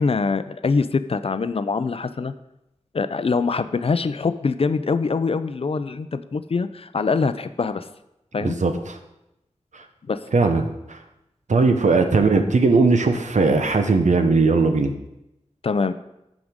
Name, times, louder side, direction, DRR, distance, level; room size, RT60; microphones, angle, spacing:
voice 1, 0.0-2.3 2.9-7.9 8.3-8.6 10.1-10.3 15.6-15.9, left 4 dB, 55° left, 12 dB, 0.5 m, -24 dB
voice 2, 8.4-9.0 9.7-9.8 10.3-10.6 10.9-11.0 11.5-14.9, right 3 dB, 80° right, 6 dB, 0.9 m, -18 dB
14.5 x 5.0 x 3.6 m, 0.87 s
wide cardioid pair, 75°, 12 cm